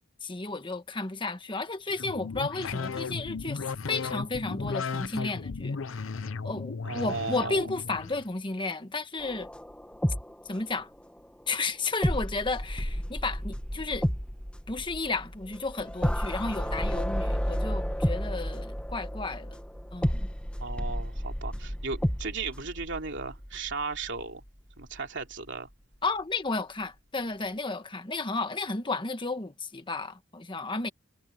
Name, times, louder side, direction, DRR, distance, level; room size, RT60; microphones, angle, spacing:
voice 1, 0.2-5.8 6.4-9.5 10.5-10.9 11.5-14.1 14.7-19.6 19.9-20.3 26.0-30.9, left 3 dB, 25° left, 1.3 m, -33 dB
sound 1, 1.9-8.2, left 4 dB, 70° left, 0.7 m, -35 dB
voice 2, 6.8-7.6 20.6-24.4 24.8-25.7, right 4 dB, 60° right, 3.1 m, -35 dB
sound 2, 9.2-11.0 11.2-11.3 12.0-24.5 24.8-25.0, equal, 5° left, 1.6 m, -32 dB
head